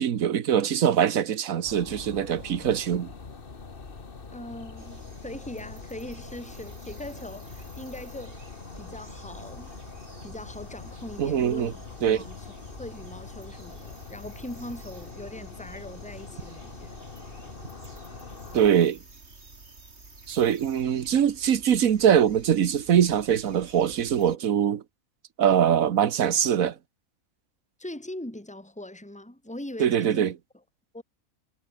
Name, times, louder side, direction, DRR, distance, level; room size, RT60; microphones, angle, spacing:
voice 1, 0.0-3.1 11.2-11.7 12.0-12.2 18.5-19.0 20.3-24.8 25.4-26.7 29.8-30.3, right 9 dB, 75° right, 1.5 m, -23 dB
sound 1, 1.6-18.7, left 4 dB, 40° left, 1.8 m, -43 dB
voice 2, 4.3-9.8 10.2-12.5 12.8-17.0 27.8-30.3 30.9-31.0, left 1 dB, 5° left, 3.0 m, -41 dB
sound 2, 4.8-24.4, right 3 dB, 50° right, 3.5 m, -51 dB
omnidirectional pair, 1.4 m